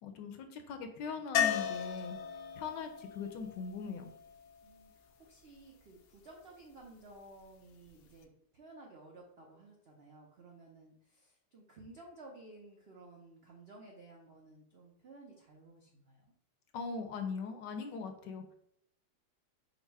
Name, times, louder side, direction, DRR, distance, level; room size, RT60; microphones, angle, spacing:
voice 1, 0.0-2.2 2.6-4.1 16.7-18.5, left 5 dB, 70° left, 6 dB, 1.2 m, -40 dB
sound 1, 1.3-5.2 7.9-8.0 8.2-8.3, left 9 dB, 90° left, 1.4 m, -36 dB
voice 2, 4.6-16.3, right 2 dB, 80° right, -1 dB, 0.5 m, -55 dB
5.4 x 2.1 x 4.6 m, 0.74 s
omnidirectional pair, 2.1 m